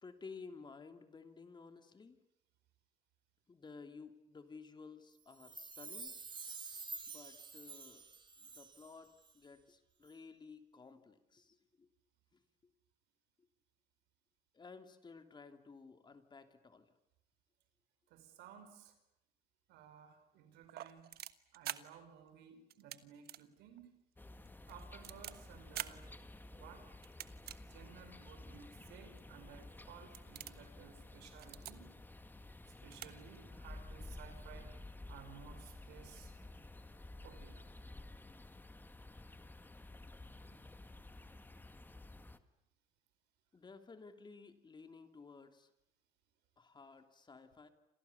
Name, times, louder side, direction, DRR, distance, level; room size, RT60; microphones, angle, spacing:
voice 1, 0.0-2.2 3.5-6.1 7.1-8.0 8.4-11.9 14.5-16.8 43.5-45.7 46.6-47.7, left 4 dB, 25° left, 7 dB, 3.0 m, -54 dB
Chime, 5.3-8.9 9.2-9.3, right 4 dB, 30° right, 3.0 m, -49 dB
voice 2, 18.1-18.9 19.7-21.2 21.5-23.9 24.7-26.1 26.5-26.9 27.6-31.9 32.8-34.7 35.1-36.3 37.2-37.6 40.3-40.6, right 8 dB, 90° right, 8 dB, 5.5 m, -57 dB
sound 1, 20.6-21.8 22.7-23.0 23.2-23.4 23.8-23.9 24.5-25.3 25.7-25.9 27.0-27.6 28.2-28.3 29.2-29.3 29.7-29.9 30.1-30.6 31.3-31.7 32.6-32.7 32.9-33.1 33.3-33.4, right 13 dB, 65° right, 1.4 m, -45 dB
sound 2, 24.2-42.4, left 2 dB, 10° left, 1.7 m, -53 dB
29.5 x 27.5 x 7.2 m, 0.83 s
cardioid pair, 110°, 17 cm